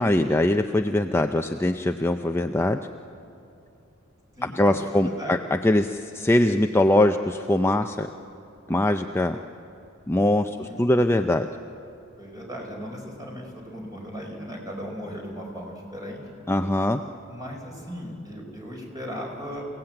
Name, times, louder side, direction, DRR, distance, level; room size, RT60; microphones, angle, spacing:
voice 1, 0.0-2.8 4.4-8.1 8.7-9.4 10.1-11.5 16.5-17.0, left 1 dB, 10° left, 6 dB, 0.5 m, -22 dB
voice 2, 4.4-5.4 10.5-11.0 12.2-16.2 17.3-19.7, equal, 20° right, 0 dB, 5.0 m, -37 dB
28.0 x 17.5 x 8.9 m, 2.7 s
head